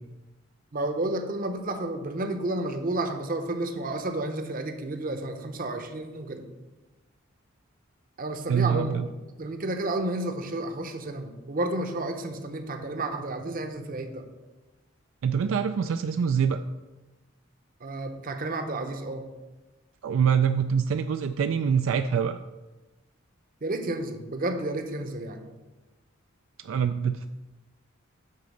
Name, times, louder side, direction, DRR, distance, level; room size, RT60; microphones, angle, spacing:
voice 1, 0.7-6.5 8.2-9.0 9.4-14.2 17.8-19.3 23.6-25.4, right 2 dB, 45° right, 6 dB, 0.8 m, -31 dB
voice 2, 8.5-9.1 15.2-16.6 20.0-22.4 26.6-27.3, right 7 dB, 75° right, 9 dB, 0.3 m, -25 dB
8.4 x 3.8 x 6.4 m, 1.1 s
head